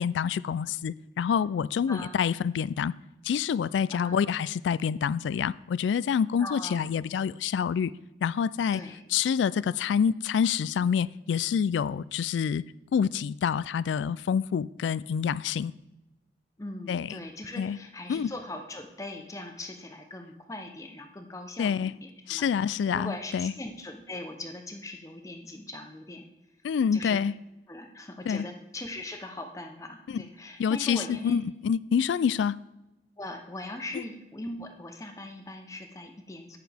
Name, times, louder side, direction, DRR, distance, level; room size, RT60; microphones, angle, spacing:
voice 1, 0.0-2.9 3.2-7.9 8.2-8.8 9.1-12.6 12.9-15.7 16.9-17.2 17.6-17.8 18.1-18.3 21.6-21.9 22.3-23.5 26.6-27.3 28.3-28.4 30.1-30.2 30.6-32.6 33.9-34.0, left 7 dB, 85° left, 0.3 m, -27 dB
voice 2, 6.4-6.8 8.7-9.0 16.6-26.3 26.9-27.2 27.7-31.4 33.2-36.6, left 2 dB, 20° left, 0.7 m, -40 dB
10.5 x 9.3 x 3.4 m
head